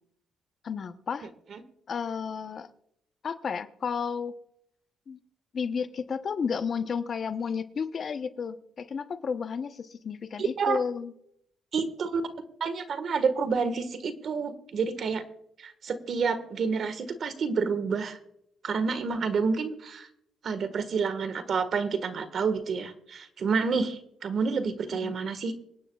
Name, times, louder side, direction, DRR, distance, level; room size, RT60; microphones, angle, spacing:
voice 1, 0.6-1.3 1.9-2.7 3.2-4.3 5.1-5.2 5.5-11.1 25.0-25.1, left 6 dB, 50° left, 9 dB, 0.9 m, -32 dB
voice 2, 10.4-10.8 11.7-12.2 12.6-15.2 15.6-18.2 18.6-20.1 20.4-25.5, right 5 dB, 55° right, 10 dB, 1.6 m, -29 dB
26.0 x 9.8 x 2.4 m, 0.72 s
cardioid pair, 90°, 0 cm